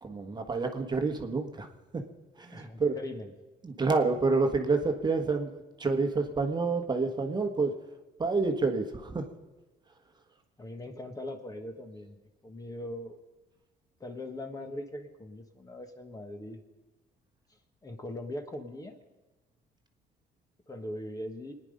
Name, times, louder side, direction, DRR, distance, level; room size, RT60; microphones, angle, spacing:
voice 1, 0.0-2.0 2.4-3.0 3.6-7.7 8.2-9.3, right 3 dB, 25° right, 4 dB, 1.3 m, -28 dB
voice 2, 2.5-3.3 10.6-12.2 12.4-13.2 14.0-16.6 17.5-19.0 20.7-21.5, left 1 dB, 20° left, 6 dB, 1.5 m, -40 dB
24.5 x 10.0 x 5.3 m, 1.1 s
cardioid pair, 110°, 17 cm